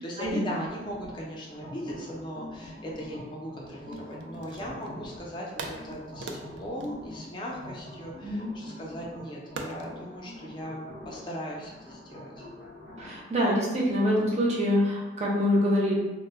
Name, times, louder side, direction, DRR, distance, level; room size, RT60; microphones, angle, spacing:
voice 1, 0.0-12.5, equal, 25° left, -3 dB, 0.4 m, -38 dB
sound 1, 0.7-13.2, left 1 dB, 65° right, 0.9 m, -45 dB
Dropping Plastic, 3.9-5.0 5.6-8.1 9.6-10.0, right 3 dB, 90° right, 0.3 m, -41 dB
voice 2, 13.0-15.9, equal, 35° right, -4 dB, 0.6 m, -25 dB
2.0 x 2.0 x 3.3 m, 1.1 s
head